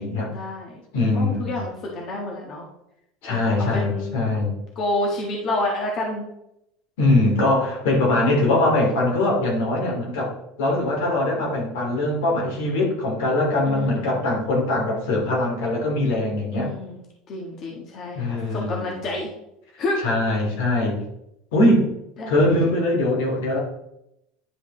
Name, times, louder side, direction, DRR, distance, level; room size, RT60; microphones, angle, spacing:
voice 1, 0.2-0.8 1.1-2.6 3.3-4.2 4.7-6.2 13.7-14.2 16.5-17.0 17.3-19.3 19.8-20.0 22.2-22.8, left 2 dB, 45° left, -1 dB, 1.6 m, -29 dB
voice 2, 0.9-1.6 3.2-4.5 7.0-10.3 10.6-16.7 18.1-19.1 20.0-21.0 21.5-21.9 22.3-23.6, left 2 dB, 80° left, -1 dB, 2.6 m, -22 dB
10.0 x 4.9 x 3.3 m, 0.81 s
supercardioid pair, 115°, 0 cm